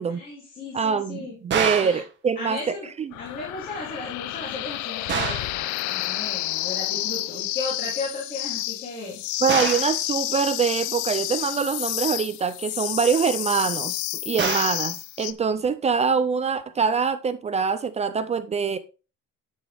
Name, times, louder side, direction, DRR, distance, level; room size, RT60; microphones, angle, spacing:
voice 1, 0.1-1.4 1.8-2.0 2.4-2.9 3.2-9.2, left 3 dB, 30° left, 2.9 m, -35 dB
voice 2, 0.7-3.1 9.4-18.8, right 6 dB, 25° right, 0.4 m, -24 dB
sound 1, 1.5-2.1 5.1-5.6 9.5-10.0 14.4-14.9, right 7 dB, 40° right, 1.5 m, -26 dB
sound 2, 3.1-15.3, left 16 dB, 80° left, 0.6 m, -30 dB
10.0 x 6.3 x 3.4 m
cardioid pair, 175°, 29 cm